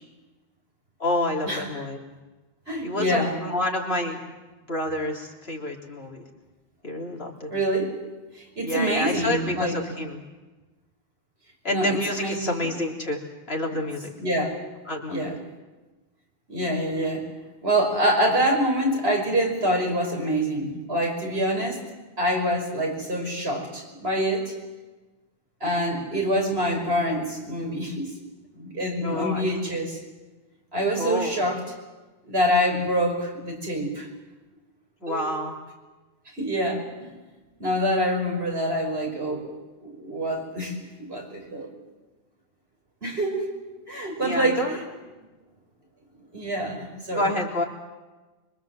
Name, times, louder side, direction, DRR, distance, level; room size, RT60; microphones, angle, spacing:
voice 1, 1.0-2.0 2.8-4.2 4.7-6.2 6.8-7.5 8.6-10.2 11.6-13.2 13.5-14.1 14.9-15.3 29.0-29.5 30.9-31.4 35.0-35.5 44.2-44.8 47.1-47.6, left 1 dB, 75° left, 0 dB, 3.9 m, -28 dB
voice 2, 2.7-3.3 7.5-7.9 8.3-10.0 11.7-12.7 14.2-14.6 15.1-15.3 16.5-17.2 17.6-21.8 22.2-24.5 25.6-28.1 28.5-30.0 30.7-31.6 32.2-34.1 35.1-35.3 36.3-37.1 37.6-39.5 39.8-41.7 43.0-43.5 43.9-44.8 46.3-47.3, equal, 80° right, 1 dB, 5.9 m, -26 dB
25.5 x 24.0 x 7.8 m, 1.2 s
omnidirectional pair, 1.0 m